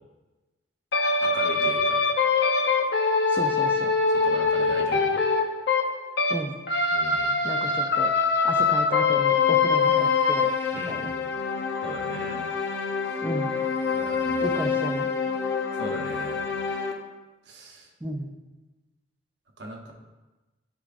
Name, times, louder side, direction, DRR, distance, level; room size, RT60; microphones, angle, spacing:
sound 1, 0.9-6.4 6.7-16.9, left 4 dB, 65° left, 0.7 m, -24 dB
voice 1, 1.2-2.0 3.3-3.5 4.2-5.2 6.9-7.4 10.7-11.1 11.8-12.4 13.9-14.7 15.7-16.4 17.5-17.9 19.6-19.9, right 2 dB, 65° right, 1 dB, 1.0 m, -38 dB
voice 2, 3.3-3.9 6.3-6.6 7.4-8.1 8.4-10.5 10.9-11.1 13.2-13.5 14.4-15.1 18.0-18.3, right 1 dB, 10° right, 1 dB, 0.4 m, -33 dB
10.5 x 4.7 x 2.5 m, 1.1 s
head